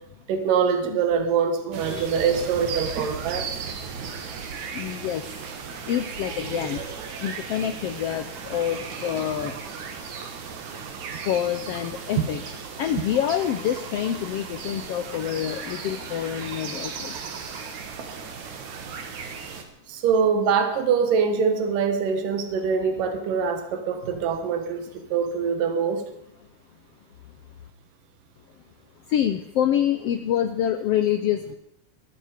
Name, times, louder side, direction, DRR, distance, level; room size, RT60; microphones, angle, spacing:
voice 1, 0.3-3.5 19.9-26.0, right 6 dB, 85° right, 7 dB, 3.1 m, -24 dB
sound 1, 1.7-19.6, right 6 dB, 65° right, 3.0 m, -36 dB
voice 2, 4.7-5.3 5.7-6.8 7.2-9.6 11.2-12.4 12.8-17.4 29.1-31.6, left 10 dB, 90° left, 9 dB, 1.3 m, -27 dB
21.5 x 11.5 x 5.1 m, 0.76 s
omnidirectional pair, 3.7 m